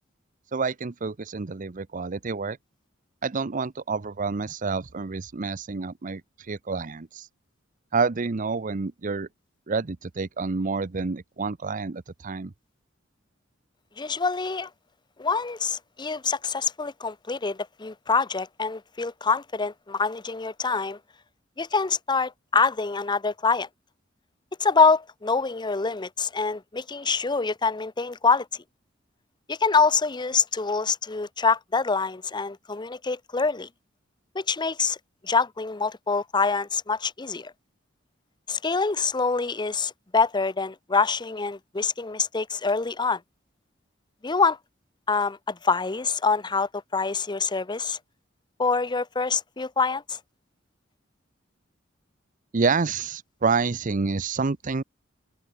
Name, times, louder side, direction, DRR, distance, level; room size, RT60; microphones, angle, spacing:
voice 1, 0.5-2.6 3.2-6.2 6.5-7.3 7.9-9.3 9.7-12.5 52.5-54.8, right 4 dB, 45° right, 0.7 m, -28 dB
voice 2, 14.0-14.7 15.2-21.0 21.6-23.7 24.6-28.5 29.5-33.7 34.3-35.0 35.2-37.5 38.5-43.2 44.2-44.6 45.1-48.0 48.6-50.2, left 4 dB, 25° left, 0.7 m, -25 dB
open air
head